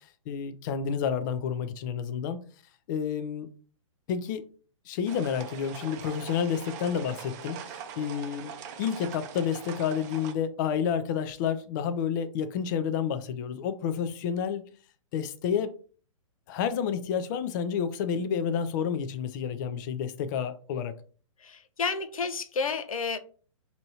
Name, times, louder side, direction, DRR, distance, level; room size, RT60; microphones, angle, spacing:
voice 1, 0.0-2.4 2.9-3.5 4.1-4.4 4.9-8.5 8.8-14.6 15.1-15.7 16.5-20.9, left 7 dB, 35° left, 0.4 m, -30 dB
sound 1, 5.1-10.3, right 7 dB, 35° right, 0.5 m, -42 dB
voice 2, 21.4-23.2, left 5 dB, 90° left, 0.5 m, -31 dB
5.2 x 2.7 x 2.9 m
hypercardioid pair, 135°, 17 cm